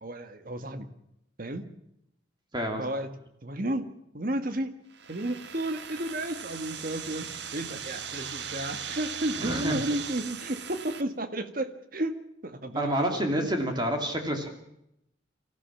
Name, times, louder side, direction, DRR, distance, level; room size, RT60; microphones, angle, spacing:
voice 1, 0.0-0.9 1.4-1.7 2.8-3.1 3.4-4.7 5.1-13.2, right 1 dB, 50° right, 9 dB, 1.7 m, -33 dB
voice 2, 2.5-2.8 9.4-9.8 12.7-14.5, equal, 25° right, 4 dB, 2.7 m, -28 dB
sound 1, 4.9-11.0, right 7 dB, 65° right, 1.4 m, -38 dB
24.5 x 15.5 x 7.3 m, 0.80 s
head